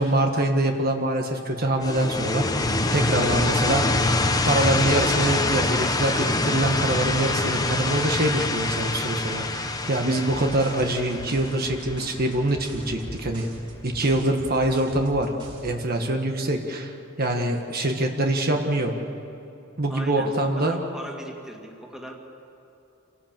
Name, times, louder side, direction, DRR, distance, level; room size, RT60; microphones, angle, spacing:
voice 1, 0.0-2.4 2.9-4.0 4.4-13.5 13.8-15.3 15.6-18.9 19.8-20.8, right 1 dB, 50° right, 3 dB, 1.4 m, -24 dB
sound 1, 1.8-12.5, left 2 dB, 20° left, 1.1 m, -25 dB
sound 2, 10.3-15.7, right 1 dB, 30° right, 5.2 m, -41 dB
voice 2, 19.9-22.2, equal, 5° right, 0 dB, 2.3 m, -38 dB
27.0 x 17.5 x 7.5 m, 2.8 s
head